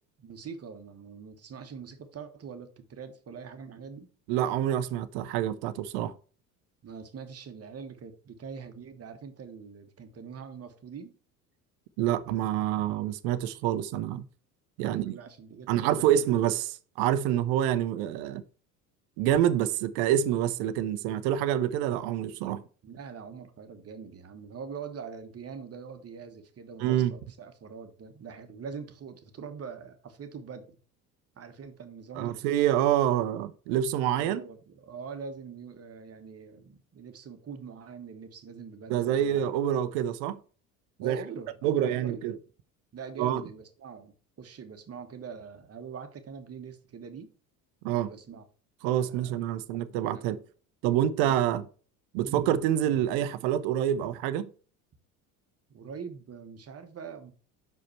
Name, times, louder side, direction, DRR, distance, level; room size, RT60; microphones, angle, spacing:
voice 1, 0.2-4.1 6.8-11.1 14.8-16.1 22.8-30.8 31.4-32.4 34.2-39.5 41.0-42.3 42.9-47.3 47.9-48.5 49.1-49.9 50.1-50.3 52.2-52.4 55.7-57.3, right 6 dB, 30° right, 1.3 m, -43 dB
voice 2, 4.3-6.1 12.0-14.2 14.8-15.2 15.7-18.4 19.2-22.6 26.8-27.1 32.2-34.4 38.9-40.4 41.0-41.2 41.6-42.4 43.2-43.4 47.8-48.1 48.8-50.4 50.8-51.7 52.1-54.5, right 11 dB, 60° right, 0.7 m, -27 dB
5.8 x 5.0 x 4.5 m
hypercardioid pair, 65°, 45 cm